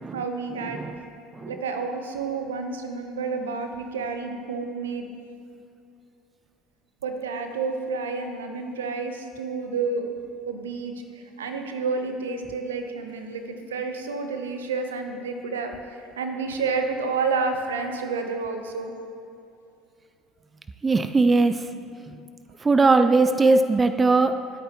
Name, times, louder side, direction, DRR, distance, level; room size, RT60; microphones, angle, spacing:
voice 1, 0.1-0.8 1.5-5.0 7.0-10.0 10.5-10.9 11.4-13.4 13.7-18.9, right 4 dB, 80° right, 6 dB, 1.0 m, -29 dB
voice 2, 20.8-21.7 22.6-24.5, right 3 dB, 25° right, 11 dB, 0.4 m, -20 dB
20.5 x 8.7 x 3.1 m, 2.6 s
hypercardioid pair, 65°, 0 cm